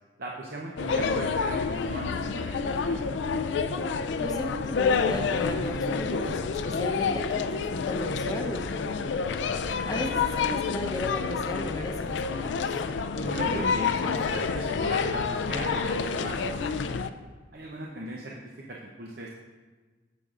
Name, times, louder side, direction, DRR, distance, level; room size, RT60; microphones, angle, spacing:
voice 1, 0.2-3.0 9.6-9.7 13.2-17.0 17.5-19.3, right 1 dB, 50° right, -2 dB, 0.7 m, -38 dB
sound 1, 0.8-17.1, left 5 dB, 70° left, 0.4 m, -28 dB
voice 2, 4.1-9.2 9.5-12.8, left 1 dB, 20° left, 1 dB, 0.8 m, -35 dB
15.0 x 6.8 x 2.5 m, 1.4 s
head